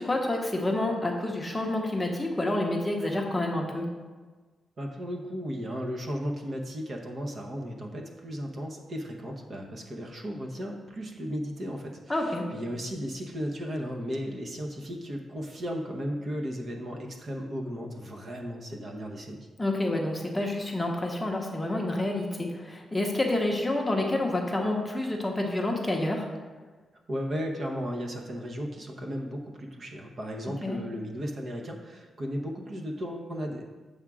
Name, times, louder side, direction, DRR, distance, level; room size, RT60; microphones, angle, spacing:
voice 1, 0.0-3.8 12.1-12.5 19.6-26.3 30.6-30.8, left 1 dB, 10° left, 0 dB, 0.8 m, -28 dB
voice 2, 4.8-19.5 27.1-33.7, equal, 40° right, 1 dB, 0.9 m, -35 dB
8.0 x 3.6 x 6.0 m, 1.4 s
wide cardioid pair, 155°, 0 cm